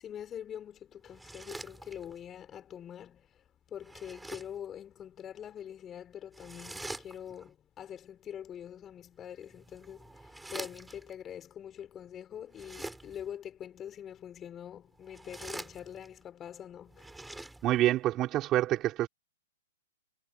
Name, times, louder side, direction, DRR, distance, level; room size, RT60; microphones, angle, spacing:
voice 1, 0.0-3.2 3.7-17.1, left 9 dB, 20° left, 6.1 m, -44 dB
sound 1, 1.1-2.3 3.8-4.7 6.3-7.5 9.3-11.1 12.5-13.3 14.9-16.2 16.9-17.9, right 2 dB, 5° right, 6.6 m, -46 dB
voice 2, 17.6-19.1, right 14 dB, 30° right, 5.6 m, -27 dB
hypercardioid pair, 120°, 0 cm